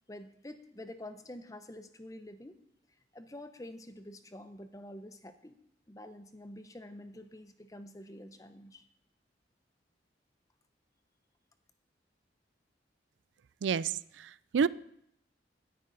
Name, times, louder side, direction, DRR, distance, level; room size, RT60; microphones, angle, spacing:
voice 1, 0.1-2.6 3.1-5.6 5.9-8.8, left 1 dB, 20° left, 9 dB, 0.7 m, -47 dB
voice 2, 13.6-14.7, right 6 dB, 85° right, 19 dB, 0.4 m, -30 dB
16.0 x 9.2 x 4.0 m, 0.72 s
head